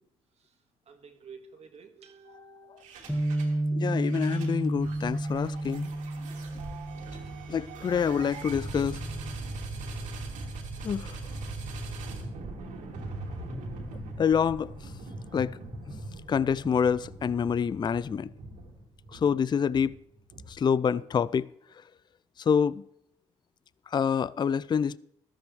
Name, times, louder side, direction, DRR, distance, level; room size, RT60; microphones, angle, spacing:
voice 1, 0.9-3.0, right 5 dB, 55° right, 1.9 m, -51 dB
voice 2, 2.3-2.8 3.1-3.2 3.7-5.9 7.5-9.0 10.8-11.2 14.2-14.7 15.3-15.6 16.3-18.3 19.1-19.9 20.5-21.5 22.4-22.8 23.9-25.0, left 7 dB, 35° left, 0.4 m, -27 dB
sound 1, 2.8-3.6 3.9-20.8, right 2 dB, 80° right, 2.9 m, -40 dB
Bass guitar, 3.1-9.3, right 1 dB, 5° left, 1.9 m, -32 dB
14.0 x 13.5 x 3.4 m
supercardioid pair, 60°, 13 cm